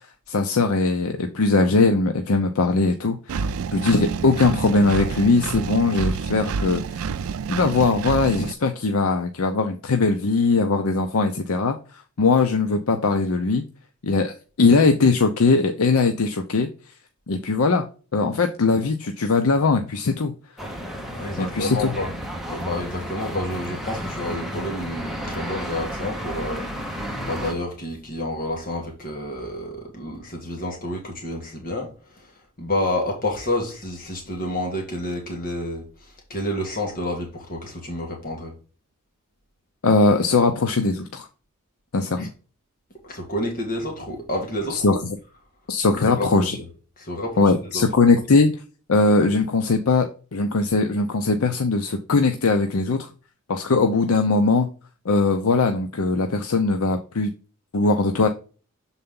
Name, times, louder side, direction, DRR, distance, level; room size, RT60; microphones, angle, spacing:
voice 1, 0.3-6.8 7.5-11.8 12.2-13.6 14.0-16.7 17.3-17.8 18.1-20.3 21.4-21.9 39.8-41.3 41.9-42.3 44.7-45.0 45.7-46.5 47.4-48.5 48.9-50.1 50.3-53.1 53.5-54.7 55.0-57.3 57.7-58.3, left 3 dB, 75° left, 0.6 m, -20 dB
Engine, 3.3-8.5, right 5 dB, 75° right, 0.4 m, -28 dB
sound 1, 20.6-27.5, equal, ahead, 0.9 m, -32 dB
voice 2, 21.1-22.1 22.5-38.5 42.2-42.3 43.0-45.0 45.9-46.6 47.0-47.8 48.3-48.4, left 1 dB, 40° left, 1.5 m, -29 dB
6.7 x 4.1 x 3.7 m
head